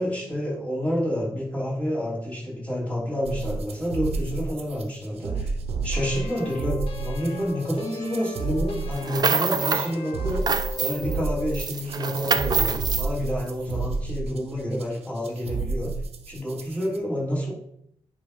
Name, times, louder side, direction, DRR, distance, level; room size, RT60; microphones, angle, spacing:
voice 1, 0.0-5.6 5.8-10.5 10.8-15.9 16.3-17.5, equal, 10° left, -6 dB, 3.5 m, -29 dB
sound 1, 3.2-17.0, right 4 dB, 70° right, 0.9 m, -31 dB
sound 2, 5.9-11.6, left 3 dB, 65° left, 1.5 m, -39 dB
sound 3, 8.9-9.9 10.3-11.2 11.5-13.1, right 5 dB, 40° right, 0.5 m, -26 dB
10.0 x 3.5 x 5.2 m, 0.70 s
wide cardioid pair, 125°, 11 cm